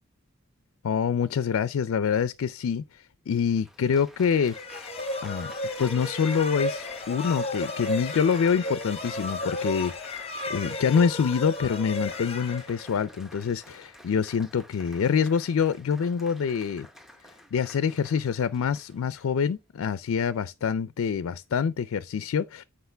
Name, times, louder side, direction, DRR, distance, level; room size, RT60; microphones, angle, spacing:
voice 1, 0.8-4.6 5.2-5.5 5.8-9.9 10.5-16.9 17.5-22.6, left 6 dB, 70° left, 0.4 m, -26 dB
Applause, 2.8-2.9 3.6-19.5 20.2-20.6, left 1 dB, ahead, 0.8 m, -49 dB
sound 1, 4.5-13.2, left 2 dB, 30° left, 0.8 m, -33 dB
8.0 x 4.9 x 3.3 m
head